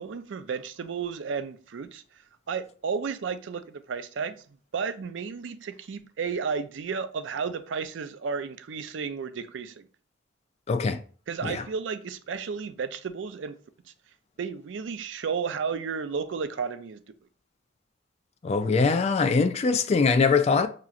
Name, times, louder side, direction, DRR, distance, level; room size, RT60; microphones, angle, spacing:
voice 1, 0.0-2.0 2.5-4.3 4.7-9.8 11.3-13.6 14.4-17.0, right 5 dB, 70° right, 0.4 m, -32 dB
voice 2, 10.7-11.0 11.4-11.6 18.4-20.7, left 4 dB, 35° left, 0.3 m, -22 dB
5.8 x 2.8 x 2.4 m
head